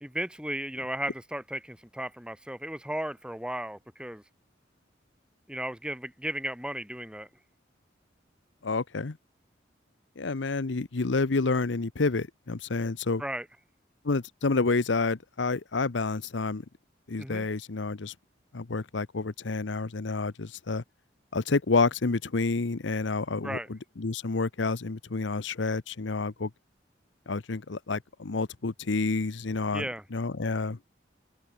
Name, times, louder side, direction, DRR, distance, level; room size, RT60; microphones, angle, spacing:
voice 1, 0.0-4.2 5.5-7.3 13.2-13.5 17.2-17.5 23.4-23.7 29.7-30.0, right 1 dB, 5° right, 1.8 m, -35 dB
voice 2, 8.6-9.2 10.2-13.2 14.0-16.6 17.1-18.1 18.5-20.8 21.3-26.5 27.3-29.8 30.1-30.8, left 3 dB, 80° left, 0.8 m, -29 dB
head